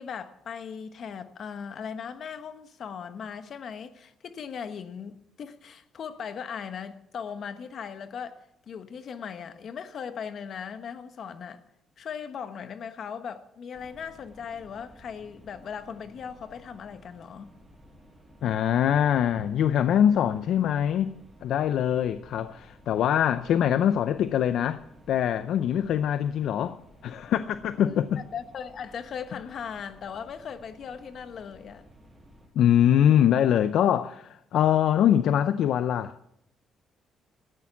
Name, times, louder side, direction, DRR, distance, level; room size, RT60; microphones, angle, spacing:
voice 1, 0.0-11.6 12.0-17.5 27.8-31.8, left 7 dB, 60° left, 1.2 m, -38 dB
sound 1, 13.7-32.5, right 1 dB, 15° right, 6.1 m, -54 dB
voice 2, 18.4-21.2 21.4-26.8 27.0-28.2 29.3-29.4 32.5-36.1, left 10 dB, 75° left, 0.5 m, -23 dB
14.0 x 9.5 x 7.2 m
cardioid pair, 90°, 0 cm